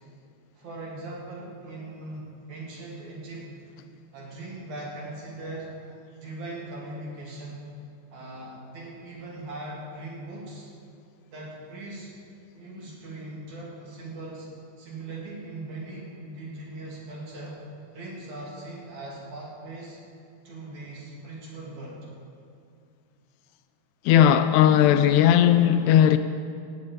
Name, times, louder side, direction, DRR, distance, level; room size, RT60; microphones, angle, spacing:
voice 1, 0.5-3.5 4.1-5.8 6.2-7.7 8.1-10.7 11.3-12.1 12.5-14.5 14.8-17.6 17.9-20.0 20.4-22.0, right 2 dB, 50° right, 3.4 m, -39 dB
voice 2, 24.1-26.2, left 10 dB, 85° left, 2.5 m, -17 dB
17.0 x 6.6 x 8.5 m
omnidirectional pair, 4.9 m